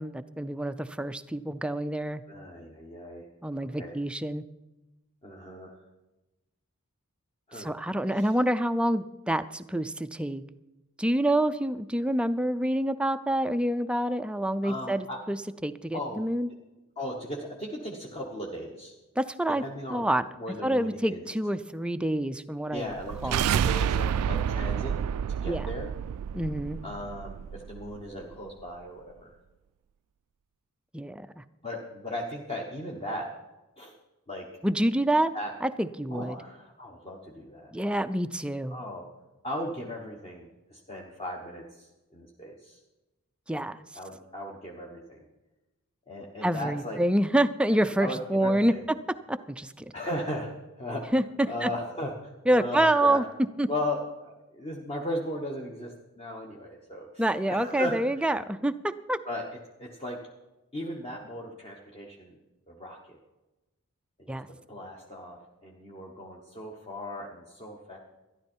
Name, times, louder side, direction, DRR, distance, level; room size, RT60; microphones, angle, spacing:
voice 1, 0.0-2.2 3.4-4.4 7.5-10.4 11.0-16.5 19.2-19.6 19.9-20.3 20.6-22.9 23.2-23.4 25.5-25.7 26.3-26.8 30.9-31.4 34.6-35.3 35.6-36.4 37.7-38.8 43.5-43.8 46.4-48.7 49.3-49.9 51.1-51.7 52.5-53.7 57.2-59.2 64.3-64.5, right 1 dB, 5° right, 10 dB, 0.4 m, -27 dB
voice 2, 2.3-3.3 3.7-3.9 5.2-5.8 7.5-7.7 8.1-8.3 14.6-15.2 15.9-16.2 17.0-18.9 19.6-20.1 20.4-21.3 22.7-25.0 25.3-25.9 26.8-29.3 31.6-33.3 33.8-33.9 34.3-34.5 35.3-35.5 36.1-37.7 38.7-39.1 39.4-42.8 43.9-45.2 46.1-47.0 48.0-48.8 49.9-51.1 51.4-52.1 52.5-53.2 53.7-58.0 59.2-59.4 59.8-60.2 60.7-62.4 62.7-63.2 64.2-68.0, left 1 dB, 25° left, -2 dB, 1.2 m, -37 dB
sound 1, 22.9-28.0, right 8 dB, 90° right, 0.3 m, -29 dB
13.0 x 11.5 x 4.5 m, 1.0 s
head